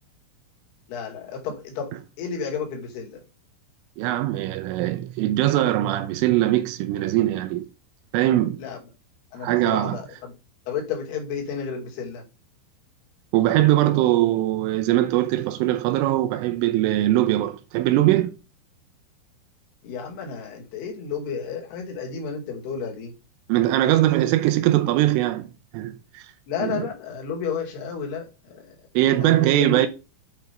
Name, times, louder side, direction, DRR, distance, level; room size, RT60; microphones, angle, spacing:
voice 1, 0.9-3.2 8.6-8.8 9.3-10.3 10.7-12.2 19.8-23.1 26.5-28.8 29.2-29.9, left 6 dB, 60° left, 4.0 m, -32 dB
voice 2, 4.0-7.7 8.1-8.6 9.4-10.0 13.3-18.4 23.5-25.5 25.7-26.2 26.6-26.9 28.9-29.9, right 14 dB, 85° right, 3.3 m, -21 dB
8.9 x 5.4 x 5.2 m
omnidirectional pair, 5.6 m